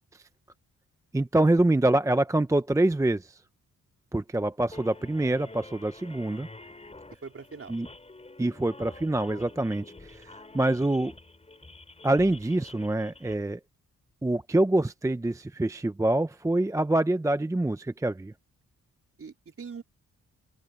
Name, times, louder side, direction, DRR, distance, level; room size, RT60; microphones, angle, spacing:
voice 1, 1.1-3.4 4.1-6.5 7.7-7.9 8.4-11.1 12.0-13.6 14.2-18.3, right 1 dB, 10° right, 0.6 m, -25 dB
sound 1, 4.7-13.3, left 2 dB, 20° left, 3.8 m, -48 dB
voice 2, 7.2-7.8 19.2-19.8, right 5 dB, 45° right, 4.2 m, -42 dB
open air
cardioid pair, 90°, 31 cm